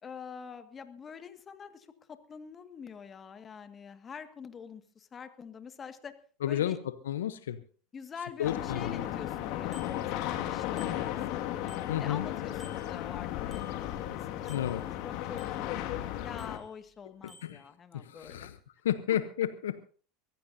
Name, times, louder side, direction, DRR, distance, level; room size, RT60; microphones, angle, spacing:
voice 1, 0.0-6.2 6.5-6.8 7.9-11.5 12.0-18.5, left 6 dB, 30° left, 9 dB, 1.9 m, -46 dB
voice 2, 6.4-7.6 8.4-9.0 11.9-12.3 14.5-14.8 17.2-17.6 17.9-18.6 18.8-19.8, left 11 dB, 80° left, 12 dB, 0.8 m, -32 dB
sound 1, 8.4-16.6, left 12 dB, 60° left, 2.0 m, -35 dB
Bicycle bell, 9.7-10.5 10.8-12.3 12.6-14.2 14.5-15.9 16.4-17.0 17.3-17.7, left 1 dB, 10° right, 6.1 m, -57 dB
24.0 x 15.5 x 2.7 m, 0.40 s
hypercardioid pair, 85°, 0 cm